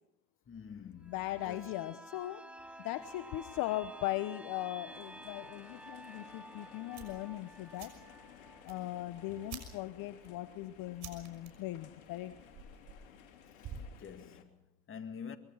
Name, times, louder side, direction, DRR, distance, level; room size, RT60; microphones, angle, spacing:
voice 1, 0.5-2.0 13.6-13.7 14.0-15.4, left 7 dB, 30° left, 2.3 m, -48 dB
sound 1, 1.0-10.6 11.0-11.1, right 1 dB, 5° right, 1.6 m, -52 dB
voice 2, 1.1-2.5 2.8-7.9 8.6-12.4, left 15 dB, 55° left, 1.2 m, -39 dB
sound 2, 4.9-14.4, left 10 dB, 80° left, 3.1 m, -57 dB
sound 3, 6.9-14.0, right 5 dB, 40° right, 6.1 m, -52 dB
24.5 x 22.5 x 5.8 m
hypercardioid pair, 95°, 41 cm